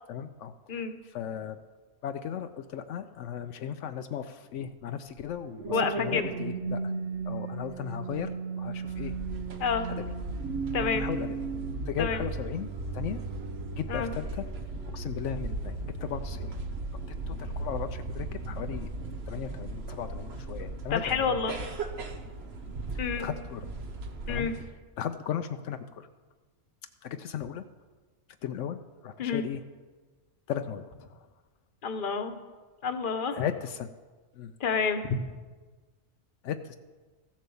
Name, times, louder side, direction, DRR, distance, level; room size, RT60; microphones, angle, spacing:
voice 1, 0.1-1.6 2.0-6.9 7.2-8.3 8.6-9.1 10.8-11.4 11.9-12.7 12.9-13.2 13.7-14.5 14.9-16.6 17.3-18.9 19.3-21.4 22.6-23.7 24.3-24.5 25.0-26.1 27.0-27.6 28.4-29.6 30.5-31.2 33.4-33.9 34.3-34.5 36.4-36.8, left 9 dB, 80° left, 8 dB, 0.9 m, -36 dB
sound 1, 5.2-15.7 16.3-16.6, right 5 dB, 75° right, 1.3 m, -36 dB
voice 2, 5.7-6.2 9.6-9.9 10.7-11.0 12.0-12.2 13.9-14.1 20.9-21.6 23.0-23.3 24.3-24.5 29.2-29.4 31.8-32.3 32.8-33.4 34.6-35.2, left 5 dB, 45° left, 7 dB, 1.1 m, -28 dB
sound 2, 8.9-24.7, right 2 dB, 60° right, 1.2 m, -37 dB
14.5 x 7.4 x 7.0 m, 1.3 s
omnidirectional pair, 1.2 m